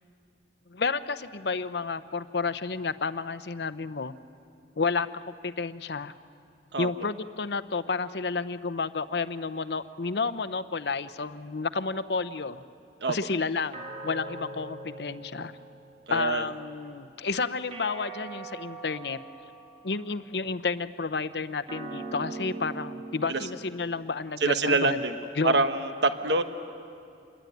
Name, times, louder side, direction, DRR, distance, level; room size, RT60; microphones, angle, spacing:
voice 1, 0.7-4.1 4.8-6.1 6.8-12.6 13.1-15.5 16.1-19.2 19.8-25.0 25.4-25.6, left 4 dB, 70° left, 12 dB, 0.8 m, -31 dB
sound 1, 13.7-16.3 17.7-20.2 21.7-24.3, right 3 dB, 35° right, 2.3 m, -42 dB
voice 2, 16.1-16.5 23.3-23.4 24.4-25.2 25.4-26.4, right 3 dB, 75° right, 8 dB, 1.2 m, -25 dB
27.5 x 21.5 x 9.3 m, 2.5 s
head